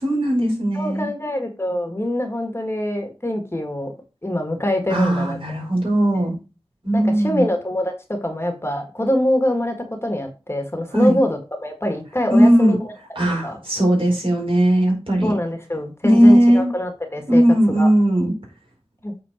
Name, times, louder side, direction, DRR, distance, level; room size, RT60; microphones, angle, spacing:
voice 1, 0.0-1.1 4.9-6.3 6.8-7.4 10.9-11.2 12.3-12.8 13.2-15.3 16.0-16.7 17.3-18.3, equal, 60° right, -1 dB, 4.4 m, -17 dB
voice 2, 0.7-3.9 4.2-5.4 6.9-9.8 10.0-12.9 13.4-13.6 15.2-17.4 17.8-17.9 19.0-19.1, left 1 dB, 25° left, 4 dB, 1.7 m, -24 dB
8.6 x 4.1 x 5.0 m, 0.31 s
wide cardioid pair, 60°, 10 cm